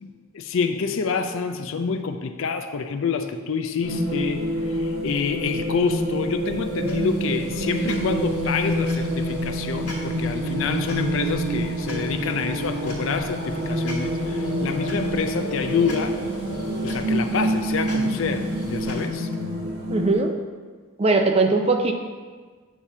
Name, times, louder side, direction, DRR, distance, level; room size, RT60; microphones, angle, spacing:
voice 1, 0.0-16.2 16.8-19.3, left 5 dB, 60° left, 7 dB, 0.4 m, -27 dB
sound 1, 3.8-20.2, right 1 dB, 70° right, 1.5 m, -27 dB
sound 2, 6.4-19.1, left 2 dB, 90° left, 1.5 m, -41 dB
voice 2, 19.9-20.3 21.0-21.9, right 3 dB, 25° right, 5 dB, 0.4 m, -20 dB
8.3 x 2.9 x 5.9 m, 1.5 s
head